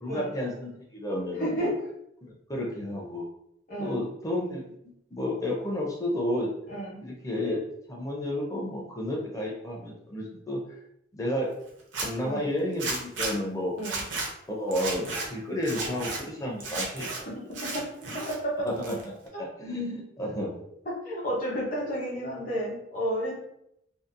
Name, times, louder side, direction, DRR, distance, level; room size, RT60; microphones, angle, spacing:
voice 1, 0.0-1.7 2.2-3.2 3.8-4.6 5.1-6.5 7.0-10.6 11.1-11.5 12.0-13.7 14.5-17.1 18.6-19.0 19.4-20.5, left 1 dB, 20° left, -2 dB, 0.5 m, -31 dB
voice 2, 1.4-1.7 3.7-4.0 6.7-7.0 12.2-12.5 13.8-14.0 17.7-17.9 18.3-18.7 19.3-19.4 20.9-23.4, equal, 45° left, -4 dB, 0.8 m, -31 dB
Zipper (clothing), 11.8-12.1 12.8-13.3 13.8-14.3 14.7-15.3 15.6-16.2 16.6-17.2 17.5-18.4 18.7-19.3, right 3 dB, 85° right, 0.6 m, -33 dB
2.6 x 2.0 x 2.5 m, 0.77 s
head